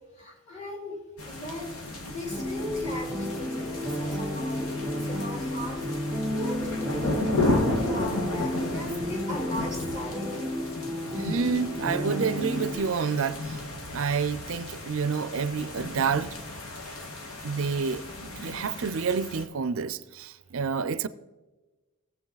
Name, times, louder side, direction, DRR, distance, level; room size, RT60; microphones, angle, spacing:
voice 1, 0.2-5.8 6.3-10.7, left 2 dB, 35° left, 3.2 m, -37 dB
sound 1, 1.2-19.4, left 2 dB, 80° left, 1.8 m, -34 dB
sound 2, 2.3-12.8, equal, 15° left, 3.0 m, -32 dB
voice 2, 11.1-13.6 13.9-16.3 17.4-21.1, right 5 dB, 65° right, 0.4 m, -29 dB
19.5 x 7.6 x 4.0 m
head